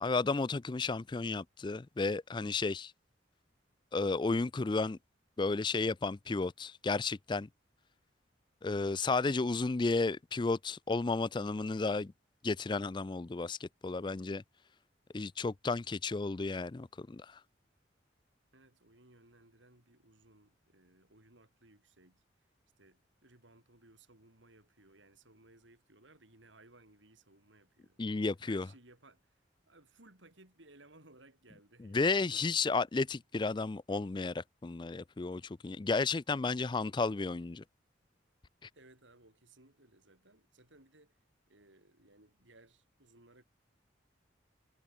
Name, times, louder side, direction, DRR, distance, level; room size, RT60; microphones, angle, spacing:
voice 1, 0.0-2.9 3.9-5.0 5.4-7.5 8.6-12.1 12.4-14.4 15.1-17.4 28.0-28.7 31.8-37.6, left 3 dB, 25° left, 0.4 m, -33 dB
voice 2, 18.5-22.2 22.8-28.0 28.5-29.4 29.7-32.6 38.7-41.2 41.5-43.4, right 2 dB, 85° right, 7.0 m, -61 dB
head